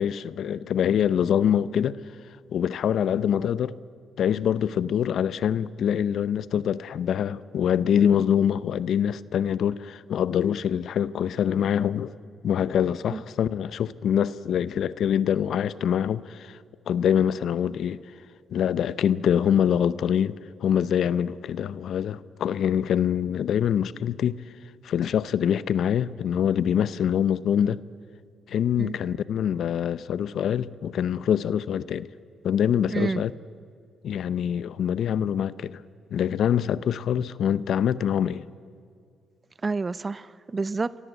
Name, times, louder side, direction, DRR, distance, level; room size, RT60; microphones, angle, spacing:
voice 1, 0.0-2.0 2.5-3.7 4.2-12.1 12.4-16.6 16.9-18.0 18.5-24.4 24.8-27.8 28.5-32.1 32.4-33.3 34.0-35.8 36.1-38.4, left 9 dB, 70° left, 0.7 m, -24 dB
voice 2, 32.9-33.2 39.6-41.0, right 3 dB, 35° right, 0.8 m, -29 dB
28.0 x 22.5 x 8.2 m
supercardioid pair, 50°, 0 cm